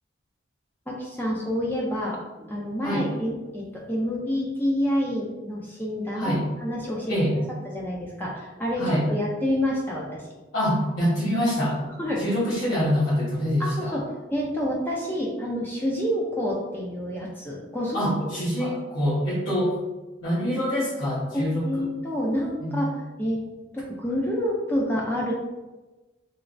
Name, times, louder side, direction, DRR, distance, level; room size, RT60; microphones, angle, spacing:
voice 1, 0.9-2.2 2.5-6.3 6.6-7.1 7.7-10.3 12.0-12.2 13.6-14.0 14.3-18.1 18.6-18.8 21.3-22.9 23.2-23.4 23.7-25.3, equal, 10° left, -4 dB, 0.4 m, -28 dB
voice 2, 6.1-6.5 7.1-7.4 8.8-9.0 10.5-11.8 12.2-14.0 17.9-19.8 20.2-21.9 22.6-22.8, equal, 70° left, -12 dB, 1.2 m, -25 dB
3.1 x 3.0 x 2.5 m, 1.1 s
head